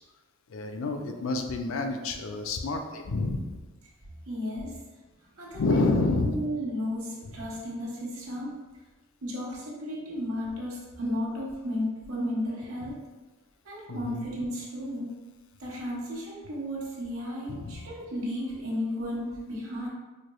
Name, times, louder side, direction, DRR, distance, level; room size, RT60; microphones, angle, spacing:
voice 1, 0.5-3.5 5.5-6.3 7.3-7.5 12.8-12.9 13.9-14.3 17.5-17.9, left 3 dB, 70° left, 5 dB, 0.4 m, -29 dB
voice 2, 4.3-4.8 5.3-5.6 6.2-8.6 9.2-13.0 13.6-15.1 15.6-19.9, left 1 dB, 90° right, -4 dB, 1.0 m, -33 dB
4.4 x 2.3 x 3.0 m, 1.2 s
head